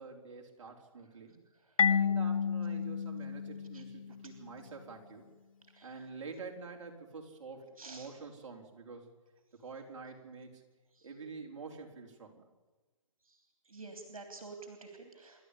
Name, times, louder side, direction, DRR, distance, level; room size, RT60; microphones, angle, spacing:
voice 1, 0.0-1.4 1.8-5.3 5.8-9.1 9.5-10.6 11.0-12.4, right 4 dB, 60° right, 1 dB, 4.6 m, -47 dB
Marimba xylophone, 1.8-4.4, left 7 dB, 75° left, 0.6 m, -31 dB
voice 2, 13.7-15.5, right 3 dB, 85° right, 5 dB, 3.3 m, -48 dB
28.0 x 12.0 x 8.5 m, 1.2 s
figure-of-eight pair, 140°, 17 cm